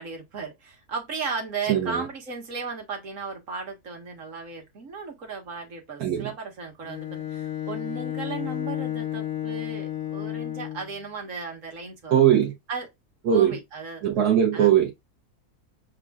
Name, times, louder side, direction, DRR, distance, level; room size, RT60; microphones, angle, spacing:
voice 1, 0.0-12.2 12.7-12.9 13.3-14.0 14.5-14.7, right 4 dB, 55° right, 1.6 m, -35 dB
voice 2, 1.7-2.0 6.0-6.3 12.1-12.5 13.2-13.6 14.0-14.9, right 10 dB, 85° right, 1.5 m, -20 dB
Bowed string instrument, 6.8-11.0, left 12 dB, 75° left, 0.4 m, -32 dB
7.3 x 2.5 x 2.3 m
omnidirectional pair, 1.6 m